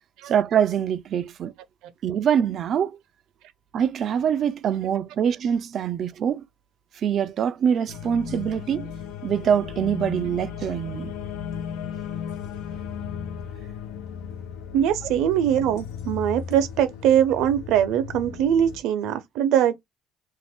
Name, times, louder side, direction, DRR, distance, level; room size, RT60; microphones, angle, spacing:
voice 1, 0.2-1.5 2.0-3.0 3.7-6.4 7.0-8.9 9.2-11.1, right 8 dB, 45° right, 0.3 m, -24 dB
sound 1, 7.9-18.8, left 7 dB, 90° left, 0.7 m, -36 dB
voice 2, 14.7-19.8, right 10 dB, 80° right, 0.6 m, -22 dB
2.5 x 2.5 x 3.4 m
cardioid pair, 150°, 0 cm